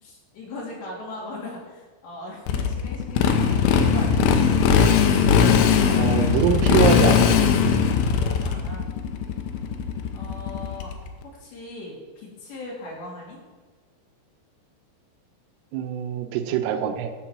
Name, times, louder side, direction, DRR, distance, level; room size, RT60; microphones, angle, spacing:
voice 1, 0.0-4.3 7.8-8.9 10.1-10.9 11.2-13.4, left 2 dB, 65° left, -4 dB, 4.8 m, -39 dB
Motorcycle, 2.5-11.1, left 7 dB, 80° left, 3.0 m, -20 dB
sound 1, 3.5-8.5, right 4 dB, 25° right, 3.4 m, -33 dB
voice 2, 5.9-7.3 15.7-17.1, right 8 dB, 85° right, 6 dB, 3.4 m, -24 dB
13.5 x 4.7 x 7.3 m, 1.4 s
omnidirectional pair, 5.6 m